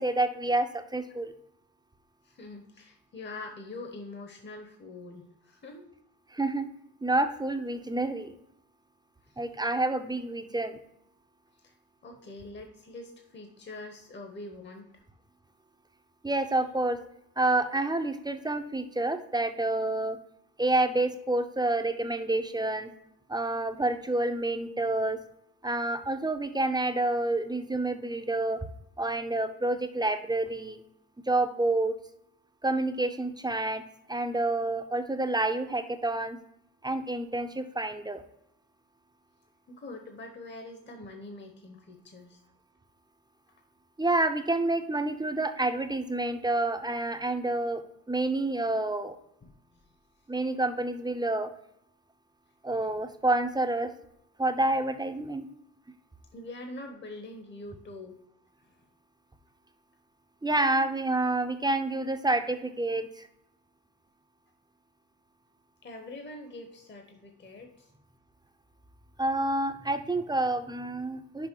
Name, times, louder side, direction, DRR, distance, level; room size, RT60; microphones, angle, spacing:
voice 1, 0.0-1.3 6.3-6.7 7.0-8.3 9.4-10.8 16.2-17.0 17.4-20.2 20.6-22.9 23.3-25.2 25.6-28.7 29.0-30.8 31.2-32.0 32.6-33.8 34.1-36.4 36.8-38.2 44.0-47.8 48.1-49.2 50.3-51.5 52.6-53.9 54.4-55.4 60.4-63.3 69.2-71.5, right 2 dB, 10° right, 8 dB, 0.6 m, -28 dB
voice 2, 2.2-5.8 9.3-9.4 11.6-11.8 12.0-14.9 39.7-42.4 49.4-49.5 52.7-52.9 56.3-58.2 58.7-58.8 65.8-67.9, left 2 dB, 30° left, 4 dB, 1.0 m, -44 dB
6.3 x 5.0 x 4.4 m, 0.79 s
cardioid pair, 100°, 35 cm